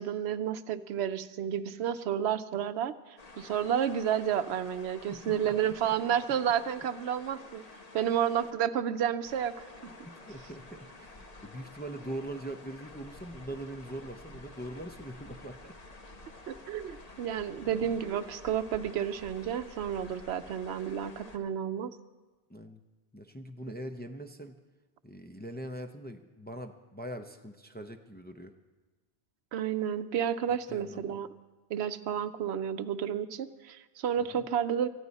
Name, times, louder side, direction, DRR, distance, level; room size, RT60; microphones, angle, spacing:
voice 1, 0.0-2.9 3.4-7.6 7.9-9.7 16.5-21.9 29.5-31.3 31.7-34.9, right 9 dB, 85° right, 12 dB, 0.9 m, -31 dB
sound 1, 3.2-8.5 9.3-21.4, left 2 dB, 40° left, 1.2 m, -50 dB
voice 2, 5.1-6.1 7.6-8.3 10.0-15.8 17.0-17.3 17.6-18.0 22.5-22.8 23.1-24.5 25.0-28.5 30.7-31.2 34.2-34.5, right 1 dB, 10° left, 6 dB, 0.6 m, -43 dB
19.5 x 14.5 x 4.1 m, 1.2 s
omnidirectional pair, 1.1 m